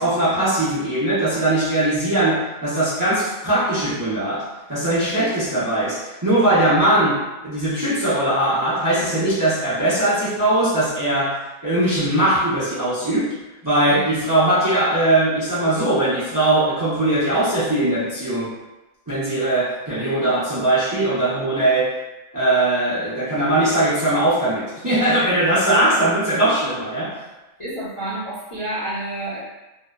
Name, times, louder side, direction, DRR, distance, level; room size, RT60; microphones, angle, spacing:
voice 1, 0.0-13.3 13.6-18.5 19.1-21.9 22.3-27.1, right 1 dB, 25° right, -12 dB, 0.4 m, -20 dB
voice 2, 27.6-29.4, right 1 dB, 35° left, -12 dB, 0.5 m, -29 dB
2.7 x 2.0 x 2.3 m, 1.1 s
omnidirectional pair, 1.4 m